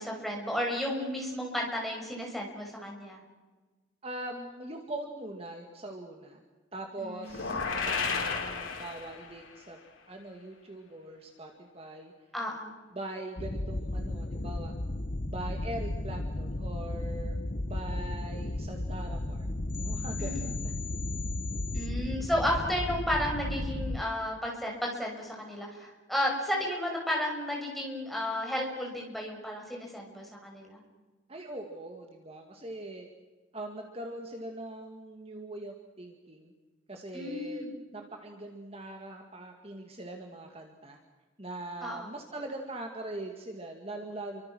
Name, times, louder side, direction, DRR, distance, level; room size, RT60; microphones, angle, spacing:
voice 1, 0.0-3.2 7.0-7.5 12.3-12.7 20.2-20.5 21.7-30.8 37.1-37.7 41.8-42.1, left 1 dB, ahead, -1 dB, 6.0 m, -33 dB
voice 2, 4.0-6.4 6.7-9.8 10.1-12.1 12.9-14.7 15.3-17.4 17.6-19.5 19.8-20.7 31.3-33.1 33.5-36.5 36.9-37.7 37.9-41.0 41.4-44.4, right 1 dB, 30° right, 3 dB, 2.2 m, -41 dB
sound 1, 7.3-9.5, left 5 dB, 90° left, 4.2 m, -32 dB
sound 2, 13.4-24.0, left 1 dB, 40° left, 0.9 m, -34 dB
30.0 x 24.5 x 6.3 m, 1.3 s
head